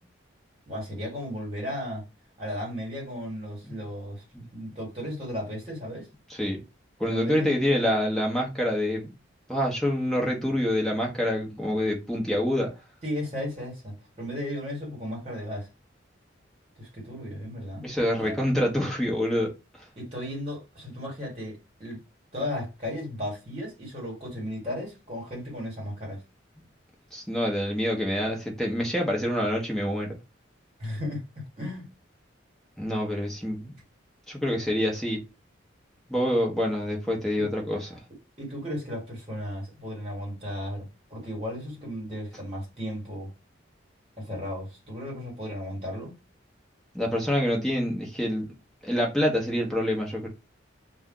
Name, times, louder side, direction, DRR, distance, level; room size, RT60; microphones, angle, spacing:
voice 1, 0.7-2.0 2.4-6.1 7.0-7.6 13.0-15.7 16.8-17.9 18.2-18.3 19.9-22.0 22.3-26.2 30.8-31.9 37.4-37.5 38.4-43.3 44.2-46.1, left 1 dB, 30° right, 1.6 m, -35 dB
voice 2, 7.0-9.1 9.5-12.7 17.8-19.5 27.1-30.2 32.8-33.7 34.3-35.2 36.1-38.0 46.9-48.5 48.8-50.3, equal, ahead, 0.8 m, -26 dB
2.5 x 2.3 x 3.7 m
head